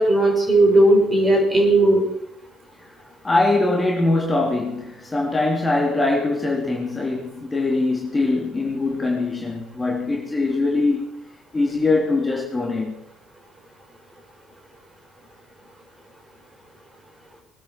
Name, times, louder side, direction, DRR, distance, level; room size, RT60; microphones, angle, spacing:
voice 1, 0.0-2.0, right 1 dB, 20° right, 5.6 m, -16 dB
voice 2, 3.2-11.2 11.5-12.9, left 2 dB, 20° left, 3.1 m, -22 dB
22.5 x 9.4 x 4.5 m
figure-of-eight pair, 55°, 0 cm